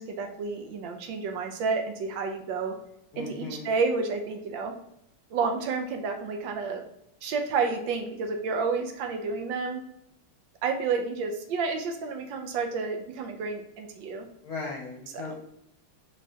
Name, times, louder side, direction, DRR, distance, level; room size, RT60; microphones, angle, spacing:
voice 1, 0.0-2.7 3.2-4.8 5.3-6.8 7.2-9.8 10.6-14.3 15.1-15.3, right 4 dB, 75° right, 5 dB, 1.4 m, -30 dB
voice 2, 3.1-3.7 14.4-15.3, left 3 dB, 60° left, -2 dB, 1.1 m, -37 dB
5.3 x 3.4 x 2.8 m, 0.78 s
omnidirectional pair, 2.2 m